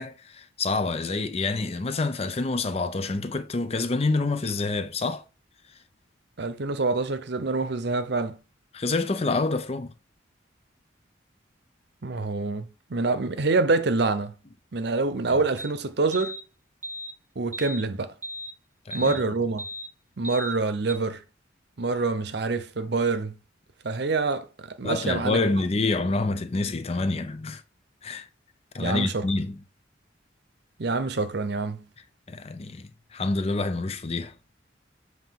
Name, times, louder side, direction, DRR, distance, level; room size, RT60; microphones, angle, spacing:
voice 1, 0.0-5.2 8.7-9.9 18.9-19.1 24.8-27.6 28.0-28.3 28.7-29.6 32.3-34.3, left 3 dB, 35° left, 0.5 m, -27 dB
voice 2, 6.4-8.4 12.0-14.3 14.7-16.4 17.4-18.1 18.9-19.6 20.2-21.2 21.8-23.3 23.8-25.4 28.8-29.3 30.8-31.9, right 3 dB, 60° right, 0.7 m, -26 dB
sound 1, 15.6-15.7 16.1-16.4 16.8-17.1 17.5-17.8 18.2-18.5 18.9-19.2 19.6-19.9 20.2-20.5 20.9-21.0, equal, 10° right, 0.7 m, -36 dB
7.3 x 2.8 x 5.7 m
head